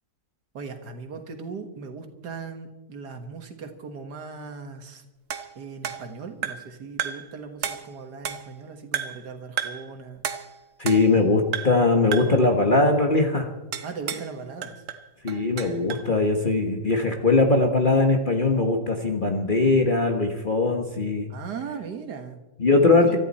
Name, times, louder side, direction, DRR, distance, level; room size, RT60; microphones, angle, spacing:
voice 1, 0.5-5.0 5.6-10.2 13.8-14.8 21.3-22.4 23.0-23.2, right 5 dB, 75° right, 6 dB, 2.2 m, -38 dB
sound 1, 5.3-6.7 7.0-7.3 7.6-8.6 8.9-9.3 9.6-9.9 10.2-11.2 11.5-11.9 12.1-12.4 13.7-14.3 14.6-16.1, right 8 dB, 55° right, 1.2 m, -33 dB
voice 2, 10.8-13.5 15.2-21.3 22.6-23.2, left 3 dB, 30° left, 3 dB, 1.5 m, -21 dB
24.0 x 13.5 x 4.3 m, 1.0 s
omnidirectional pair, 1.8 m